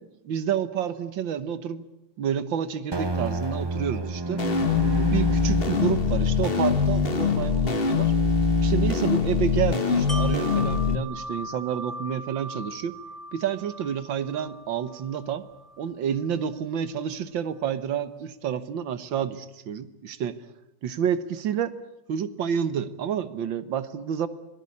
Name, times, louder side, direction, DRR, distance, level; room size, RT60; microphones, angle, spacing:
voice 1, 0.2-1.9 2.2-4.4 5.1-8.1 8.6-13.0 13.3-15.4 15.8-20.4 20.8-21.7 22.1-24.3, right 8 dB, 70° right, 13 dB, 1.9 m, -29 dB
sound 1, 2.9-9.4, right 2 dB, 20° right, 0.8 m, -33 dB
sound 2, 4.4-11.0, left 5 dB, 30° left, 1.6 m, -23 dB
Wind chime, 10.1-15.9 16.3-16.4, right 2 dB, ahead, 3.5 m, -39 dB
25.5 x 19.0 x 8.5 m, 0.90 s
omnidirectional pair, 2.1 m